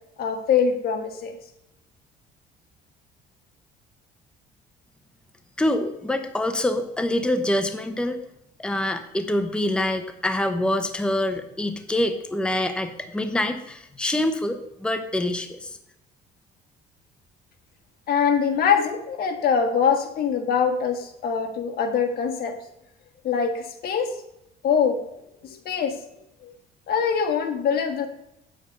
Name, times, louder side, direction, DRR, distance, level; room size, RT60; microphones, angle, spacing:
voice 1, 0.2-1.4 18.1-22.6 23.2-24.1 24.6-25.0 25.4-26.0 26.4-26.5 26.9-28.1, left 6 dB, 65° left, 6 dB, 1.6 m, -23 dB
voice 2, 5.6-8.2 8.6-15.8, left 1 dB, 5° left, 8 dB, 0.8 m, -25 dB
8.5 x 7.6 x 5.3 m, 0.83 s
cardioid pair, 110°, 17 cm